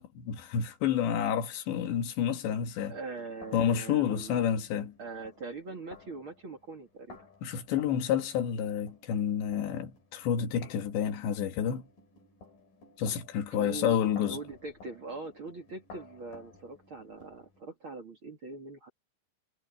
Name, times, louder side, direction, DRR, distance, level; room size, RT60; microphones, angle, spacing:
voice 1, 0.0-3.0 3.5-4.9 7.4-11.9 13.0-14.4, left 8 dB, 70° left, 4.3 m, -29 dB
sound 1, 2.9-17.6, left 3 dB, 45° left, 6.8 m, -55 dB
voice 2, 2.9-4.5 5.0-7.3 13.5-18.9, right 3 dB, 40° right, 1.9 m, -42 dB
omnidirectional pair, 5.4 m